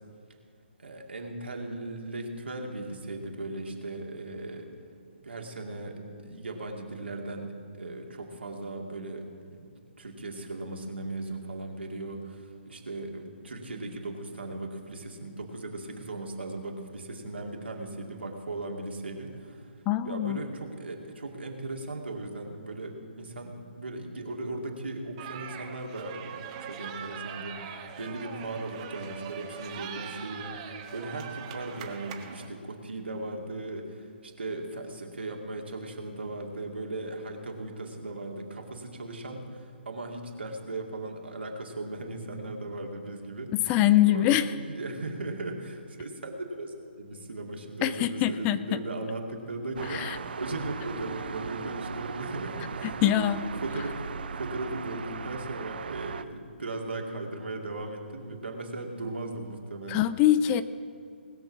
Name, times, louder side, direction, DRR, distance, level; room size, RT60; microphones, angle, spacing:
voice 1, 0.8-4.7 5.2-9.7 10.0-19.7 20.0-43.8 44.0-53.3 53.6-54.0 54.3-60.1, right 2 dB, 75° right, 1 dB, 2.2 m, -37 dB
voice 2, 19.9-20.4 43.7-44.5 47.8-48.8 49.9-50.2 53.0-53.4 59.9-60.6, left 13 dB, 20° left, 14 dB, 0.4 m, -23 dB
sound 1, 25.2-32.5, right 8 dB, 35° right, 1.2 m, -41 dB
sound 2, 49.8-56.2, right 6 dB, 60° right, 0.6 m, -38 dB
20.0 x 6.7 x 6.0 m, 2.3 s
figure-of-eight pair, 135°, 6 cm